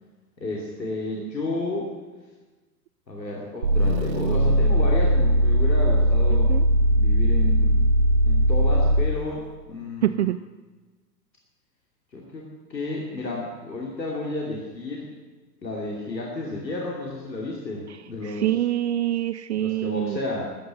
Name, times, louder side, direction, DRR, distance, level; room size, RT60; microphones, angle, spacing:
voice 1, 0.4-1.9 3.1-6.5 6.8-7.8 8.3-10.3 12.1-12.4 12.7-15.1 15.6-18.5 19.5-20.6, left 2 dB, 90° left, -2 dB, 2.9 m, -32 dB
sound 1, 3.6-9.2, right 1 dB, 75° right, 2.2 m, -19 dB
voice 2, 6.3-6.6 10.0-10.4 17.9-20.2, right 13 dB, 45° right, 14 dB, 0.4 m, -26 dB
14.0 x 9.5 x 9.3 m, 1.2 s
figure-of-eight pair, 110°, 50 cm